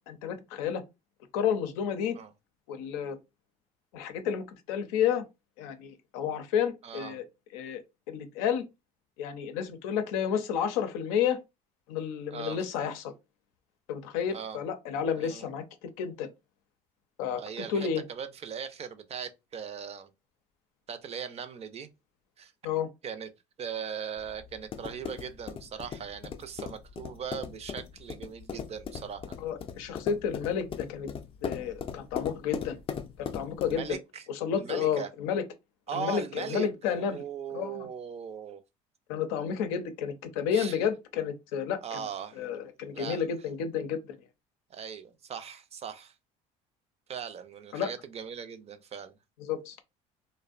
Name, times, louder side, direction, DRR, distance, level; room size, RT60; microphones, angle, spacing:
voice 1, 0.1-0.8 1.3-2.2 2.7-3.2 3.9-5.2 5.6-7.3 7.5-7.8 8.1-8.6 9.2-11.4 11.9-13.1 13.9-16.3 17.2-18.0 22.6-22.9 29.4-31.1 31.4-32.8 33.2-33.9 34.3-35.4 35.9-37.2 37.5-37.9 39.1-42.0 42.4-44.2 47.7-47.9 49.4-49.8, left 8 dB, 85° left, 0.5 m, -31 dB
voice 2, 6.8-7.2 12.3-12.6 14.3-14.6 15.2-15.5 17.4-20.1 20.9-21.9 22.4-22.5 23.0-23.3 23.6-29.2 33.6-34.2 34.6-35.1 35.9-38.6 40.5-40.8 41.8-42.4 42.9-43.2 44.7-46.1 47.1-49.2, right 7 dB, 40° right, 0.4 m, -39 dB
sound 1, 24.2-33.9, left 7 dB, 30° left, 0.4 m, -39 dB
2.5 x 2.1 x 2.4 m
supercardioid pair, 85°, 17 cm